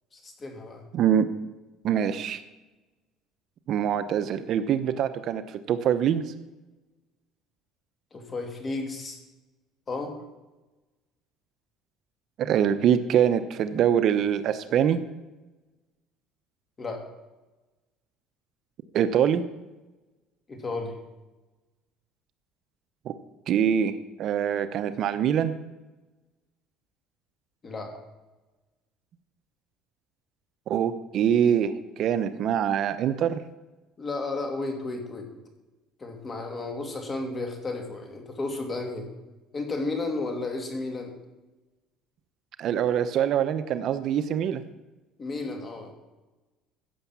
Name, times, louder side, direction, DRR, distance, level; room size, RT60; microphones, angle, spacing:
voice 1, 0.1-0.9 8.1-9.2 9.9-10.2 16.8-17.1 20.5-20.9 27.6-27.9 34.0-35.3 36.0-39.1 39.5-41.1 45.2-45.9, left 3 dB, 25° left, 4 dB, 2.6 m, -33 dB
voice 2, 0.9-1.3 1.8-2.4 3.7-6.3 12.4-15.0 18.9-19.4 23.1-23.2 23.5-25.6 30.7-33.4 42.6-44.6, right 9 dB, 50° right, 11 dB, 0.8 m, -24 dB
15.5 x 7.0 x 7.4 m, 1.1 s
cardioid pair, 130°, 0 cm